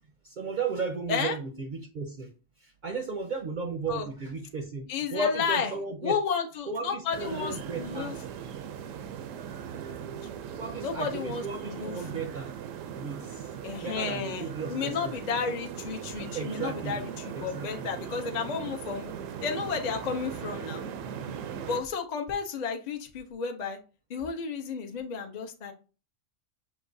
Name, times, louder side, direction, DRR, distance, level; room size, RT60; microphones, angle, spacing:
voice 1, 0.2-2.3 2.6-6.2 6.7-8.1 10.5-12.5 13.0-13.5 13.8-15.1 16.2-17.0 17.3-17.9 21.3-21.4, right 5 dB, 55° right, 0.6 m, -35 dB
voice 2, 4.9-5.7 6.0-8.2 10.8-12.0 13.6-19.1 19.4-20.9 21.7-23.8 24.1-25.7, left 5 dB, 50° left, 0.5 m, -32 dB
sound 1, 7.1-21.8, right 8 dB, 85° right, 1.0 m, -39 dB
6.2 x 2.8 x 2.6 m
omnidirectional pair, 1.3 m